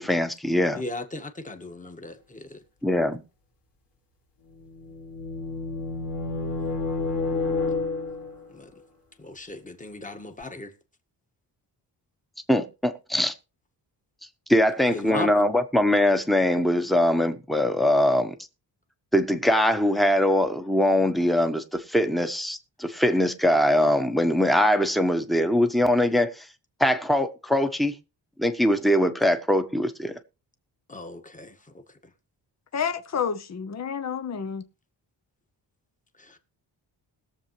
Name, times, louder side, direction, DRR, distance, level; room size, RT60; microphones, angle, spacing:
voice 1, 0.0-0.8 2.8-3.2 12.5-13.3 14.5-18.3 19.1-26.4 26.8-27.9 28.4-30.1, left 1 dB, ahead, 1.1 m, -22 dB
voice 2, 0.7-2.6 8.5-8.7 9.2-10.7 14.9-15.3 30.9-32.1 36.2-36.4, left 2 dB, 20° left, 1.6 m, -37 dB
sound 1, 4.5-8.4, left 3 dB, 75° left, 3.2 m, -30 dB
voice 3, 32.7-34.7, left 7 dB, 40° left, 0.9 m, -29 dB
21.0 x 7.2 x 3.2 m
wide cardioid pair, 115°, 43 cm